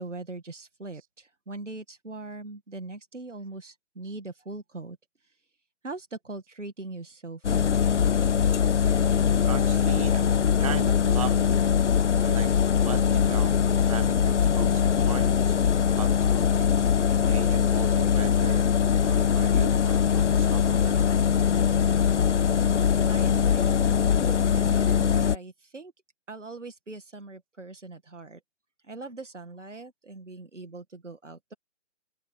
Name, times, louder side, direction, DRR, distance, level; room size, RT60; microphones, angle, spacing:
voice 1, 0.0-5.0 5.2-5.3 5.8-7.8 23.0-25.9 26.3-28.4 28.8-31.5, right 3 dB, 80° right, 2.2 m, -41 dB
sound 1, 7.4-25.4, left 7 dB, 75° left, 0.6 m, -22 dB
voice 2, 8.9-11.6 12.2-12.5 12.8-21.1, right 11 dB, 30° right, 0.9 m, -39 dB
figure-of-eight pair, 135°, 36 cm